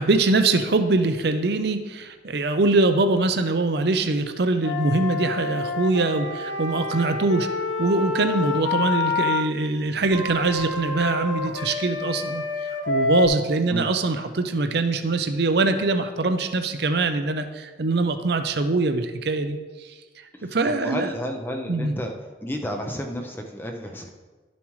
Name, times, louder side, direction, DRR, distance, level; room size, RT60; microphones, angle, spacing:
voice 1, 0.0-7.5 7.8-12.4 12.9-19.6 20.5-21.1 21.7-21.9, right 3 dB, 60° right, 7 dB, 0.6 m, -23 dB
Wind instrument woodwind instrument, 4.6-9.4 10.1-13.3, left 3 dB, 75° left, 1.0 m, -27 dB
voice 2, 20.4-22.1 22.4-24.1, equal, 10° left, 3 dB, 0.6 m, -31 dB
12.0 x 7.1 x 3.1 m, 1.3 s
head